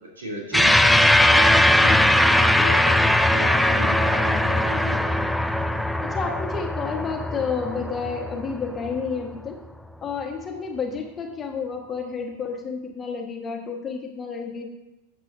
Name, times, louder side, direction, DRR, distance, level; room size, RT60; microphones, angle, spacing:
voice 1, 0.2-5.2, equal, 75° right, -3 dB, 3.2 m, -34 dB
sound 1, 0.5-9.2, left 1 dB, ahead, 0.4 m, -20 dB
voice 2, 6.0-9.6 10.0-14.6, left 5 dB, 25° left, 2 dB, 1.5 m, -30 dB
12.5 x 7.6 x 2.7 m, 0.96 s
figure-of-eight pair, 90°, 0 cm